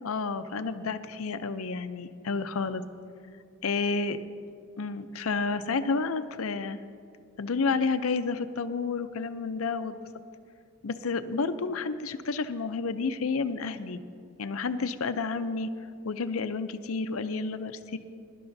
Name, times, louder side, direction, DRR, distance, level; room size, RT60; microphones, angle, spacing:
voice 1, 0.0-2.8 3.6-4.2 4.8-6.8 7.4-10.0 10.8-14.0 14.4-15.7 16.0-18.0, left 4 dB, 85° left, 11 dB, 0.6 m, -30 dB
22.0 x 11.5 x 2.7 m, 2.4 s
head